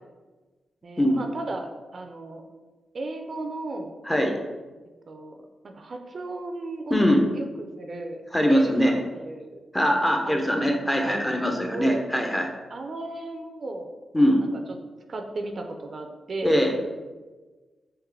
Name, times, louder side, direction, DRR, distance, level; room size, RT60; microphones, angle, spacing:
voice 1, 0.8-2.5 2.9-4.0 5.1-5.4 5.6-8.2 8.5-9.6 10.3-12.0 12.7-13.9 14.4-14.6 15.1-16.6, right 2 dB, 50° right, 4 dB, 0.4 m, -35 dB
voice 2, 4.1-4.4 6.9-7.2 8.3-8.9 9.7-12.5 14.1-14.4 16.4-16.8, equal, 10° left, 3 dB, 0.5 m, -21 dB
3.6 x 2.8 x 3.2 m, 1.3 s
cardioid pair, 100°, 0 cm